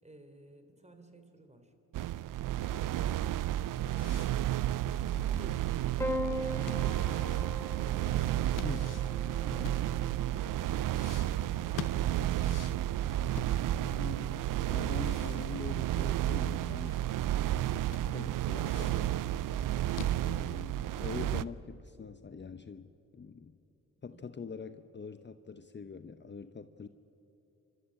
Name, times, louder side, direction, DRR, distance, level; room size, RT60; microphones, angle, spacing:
voice 1, 0.0-1.7 5.3-8.7 24.1-24.3, right 1 dB, 20° right, 7 dB, 3.7 m, -55 dB
sound 1, 1.9-21.4, right 13 dB, 70° right, 0.6 m, -32 dB
sound 2, 2.6-10.3 10.9-14.0 14.3-14.4 14.8-17.3 17.6-17.7 17.9-19.1 19.6-20.7, left 11 dB, 65° left, 0.7 m, -49 dB
Piano, 6.0-10.5 11.7-12.3, left 1 dB, 10° left, 3.0 m, -40 dB
voice 2, 8.6-9.0 9.5-9.9 13.7-17.0 18.0-19.2 20.2-23.6 24.0-26.9, left 5 dB, 30° left, 11 dB, 0.9 m, -44 dB
29.5 x 13.0 x 8.9 m, 2.9 s
supercardioid pair, 45°, 34 cm